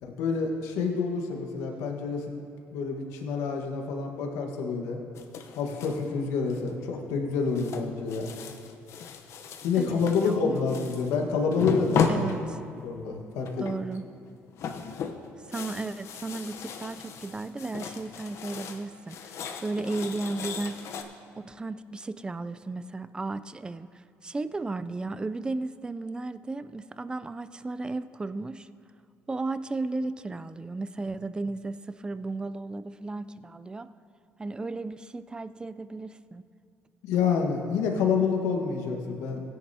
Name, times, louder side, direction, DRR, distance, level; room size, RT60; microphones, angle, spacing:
voice 1, 0.0-2.4 2.7-5.0 5.6-8.3 9.6-12.2 12.8-13.7 37.0-39.4, left 5 dB, 85° left, 2 dB, 1.5 m, -28 dB
sound 1, 5.1-6.1 6.5-6.9 7.5-11.2 11.5-12.9 13.4-14.0 14.3-18.8 19.1-21.0, left 6 dB, 65° left, 0.9 m, -34 dB
voice 2, 9.8-10.7 12.1-12.6 13.6-14.0 15.5-20.8 21.4-28.7 29.3-33.9 34.4-36.4, right 3 dB, 15° right, 13 dB, 0.4 m, -34 dB
17.0 x 10.0 x 2.8 m, 2.4 s
cardioid pair, 85°, 5 cm